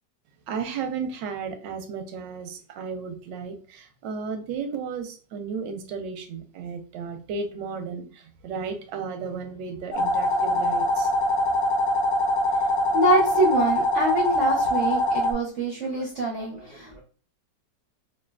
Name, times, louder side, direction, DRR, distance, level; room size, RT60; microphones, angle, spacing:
voice 1, 0.5-11.1, right 5 dB, 85° right, 7 dB, 1.3 m, -34 dB
sound 1, 9.9-15.3, left 1 dB, 60° left, 0.7 m, -23 dB
voice 2, 12.9-17.0, right 1 dB, 65° right, -1 dB, 0.7 m, -25 dB
3.2 x 2.6 x 2.2 m, 0.40 s
omnidirectional pair, 1.9 m